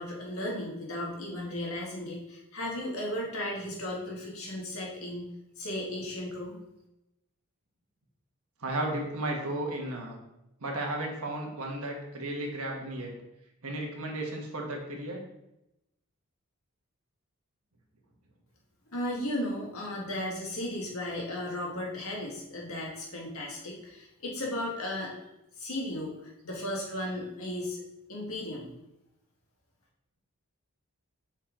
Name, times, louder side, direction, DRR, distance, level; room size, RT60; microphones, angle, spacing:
voice 1, 0.0-6.6 18.9-25.2 25.6-27.8 28.1-28.7, left 1 dB, 70° left, -3 dB, 1.8 m, -35 dB
voice 2, 8.6-10.2 10.6-13.1 13.6-15.2, right 1 dB, 75° right, 0 dB, 1.4 m, -34 dB
6.7 x 4.4 x 3.8 m, 0.89 s
head